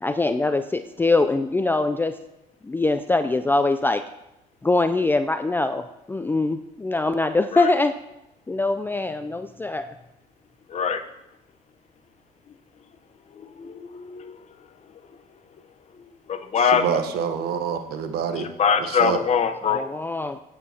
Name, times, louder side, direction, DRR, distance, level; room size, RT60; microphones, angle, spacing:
voice 1, 0.0-2.2 2.6-4.0 4.6-8.0 8.5-9.9 19.7-20.4, left 2 dB, 10° left, 9 dB, 0.4 m, -23 dB
voice 2, 10.7-11.0 13.3-14.4 16.3-17.0 18.4-19.8, left 7 dB, 40° left, 8 dB, 0.9 m, -23 dB
voice 3, 16.6-18.5 18.8-19.2, right 7 dB, 65° right, 8 dB, 1.1 m, -27 dB
16.5 x 8.7 x 2.9 m, 0.89 s
supercardioid pair, 85°, 17 cm